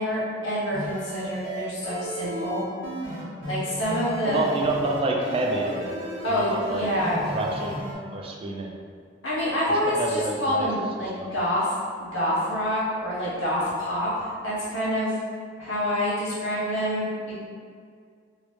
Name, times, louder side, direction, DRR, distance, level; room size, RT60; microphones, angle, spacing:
voice 1, 0.0-2.6 3.5-4.5 6.2-7.3 9.2-11.7 12.0-15.1 15.6-17.1, equal, 85° left, -9 dB, 1.3 m, -27 dB
sound 1, 0.7-7.9, right 1 dB, 80° right, 0.7 m, -34 dB
voice 2, 4.2-6.0 6.3-6.9 7.3-8.8 9.7-10.7 11.1-11.3, right 2 dB, 30° right, 0 dB, 0.3 m, -28 dB
3.0 x 2.5 x 3.1 m, 2.1 s
head